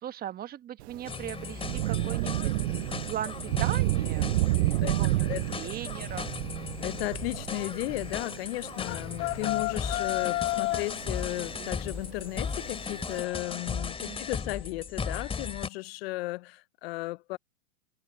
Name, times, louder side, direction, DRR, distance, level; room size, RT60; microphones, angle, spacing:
voice 1, 0.0-4.3 4.8-6.3 14.0-14.2, right 11 dB, 25° right, 1.2 m, -38 dB
Thunder / Rain, 0.8-13.2, right 18 dB, 55° right, 0.9 m, -31 dB
sound 1, 1.1-15.7, left 5 dB, 15° left, 3.2 m, -37 dB
voice 2, 4.8-5.4 6.8-17.4, left 21 dB, 55° left, 0.8 m, -35 dB
sound 2, 8.8-10.9, left 18 dB, 35° left, 1.7 m, -30 dB
hypercardioid pair, 125°, 37 cm